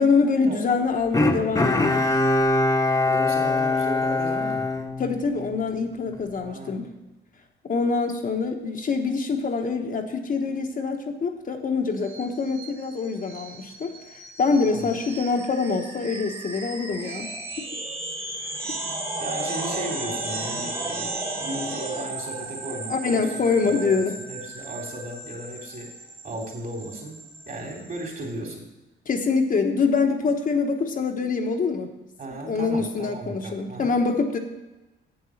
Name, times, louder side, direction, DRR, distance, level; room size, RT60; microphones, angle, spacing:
voice 1, 0.0-2.1 5.0-6.9 7.6-14.0 14.4-17.3 22.9-24.1 29.1-31.9 32.5-34.4, left 4 dB, 45° left, 3 dB, 1.1 m, -25 dB
Bowed string instrument, 1.1-5.6 6.1-6.2, left 2 dB, 15° left, 1.1 m, -23 dB
voice 2, 3.1-4.7 6.4-6.9 14.6-14.9 19.2-26.0 26.2-28.7 32.2-33.9, right 1 dB, 45° right, -2 dB, 3.5 m, -35 dB
sound 1, 12.0-28.3, right 2 dB, 30° right, 2.0 m, -35 dB
7.9 x 7.1 x 6.4 m, 1.1 s
cardioid pair, 90°, 20 cm